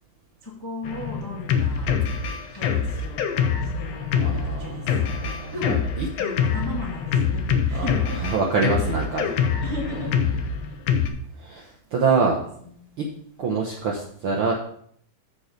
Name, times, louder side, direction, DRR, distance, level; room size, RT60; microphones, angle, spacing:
voice 1, 0.4-1.9 2.5-3.4 3.8-4.9 5.5-5.8 6.2-8.2 8.8-10.1 12.2-12.3 12.6-12.9, left 3 dB, 15° left, -3 dB, 0.9 m, -36 dB
Drum kit, 0.8-11.1, left 6 dB, 70° left, 1.7 m, -25 dB
voice 2, 4.1-6.1 7.7-7.9 8.2-9.3 11.4-12.4 13.0-13.1 13.4-14.5, right 4 dB, 65° right, -1 dB, 1.4 m, -25 dB
7.1 x 6.5 x 5.1 m, 0.63 s
omnidirectional pair, 3.6 m